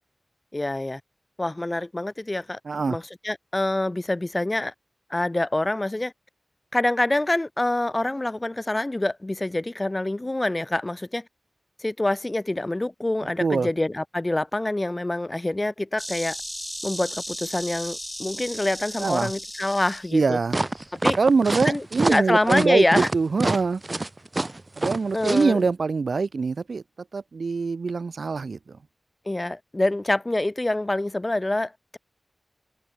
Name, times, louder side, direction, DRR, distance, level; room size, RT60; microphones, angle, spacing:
voice 1, 0.5-1.0 1.4-4.7 5.1-6.1 6.7-11.3 11.8-16.4 16.8-20.4 21.0-21.2 21.6-23.1 25.1-25.6 29.2-32.0, left 1 dB, 25° left, 1.2 m, -26 dB
voice 2, 2.7-3.0 13.4-13.7 19.0-19.3 20.1-20.6 21.2-23.8 24.8-26.8 27.1-28.8, right 4 dB, 75° right, 0.4 m, -24 dB
Insect, 16.0-21.0, equal, 5° left, 0.8 m, -36 dB
sound 1, 20.5-25.5, right 2 dB, 35° right, 1.4 m, -26 dB
wide cardioid pair, 65°, 0 cm